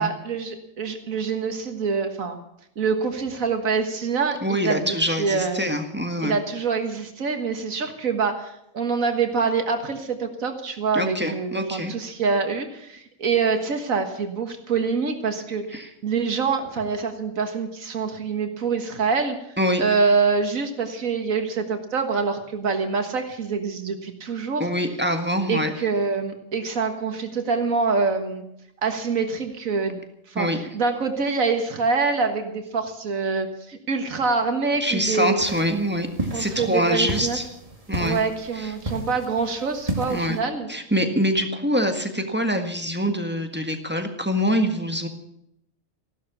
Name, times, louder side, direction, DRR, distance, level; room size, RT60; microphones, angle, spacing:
voice 1, 0.0-2.4 2.8-5.6 6.2-19.4 19.8-24.7 25.5-28.4 28.8-30.0 30.4-35.4 36.3-37.4 38.0-40.7, right 4 dB, 80° right, 6 dB, 1.9 m, -25 dB
voice 2, 4.4-6.4 10.9-11.9 15.7-15.9 19.6-19.8 24.6-25.7 30.3-30.6 34.8-36.1 36.3-37.4 37.9-38.2 38.6-38.7 40.1-40.4 40.7-45.1, equal, 10° right, 5 dB, 1.6 m, -24 dB
sound 1, 35.4-40.4, right 1 dB, 25° right, 2.2 m, -33 dB
15.0 x 12.0 x 7.1 m, 0.79 s
omnidirectional pair, 1.4 m